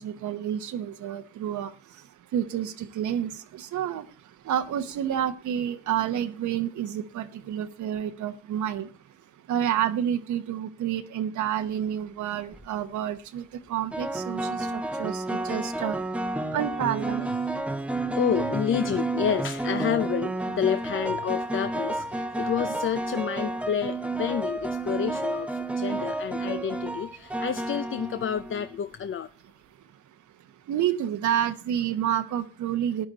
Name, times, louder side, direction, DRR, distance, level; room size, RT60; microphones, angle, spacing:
voice 1, 0.0-1.7 2.3-4.0 4.5-8.9 9.5-13.4 13.7-16.0 16.5-17.3 22.7-22.8 30.7-33.1, right 10 dB, 75° right, 8 dB, 1.0 m, -29 dB
sound 1, 12.3-12.7 13.9-28.7, right 2 dB, 5° right, 0.9 m, -31 dB
voice 2, 18.2-29.3, left 8 dB, 45° left, 12 dB, 0.6 m, -29 dB
13.5 x 9.9 x 4.0 m, 0.32 s
cardioid pair, 90°, 30 cm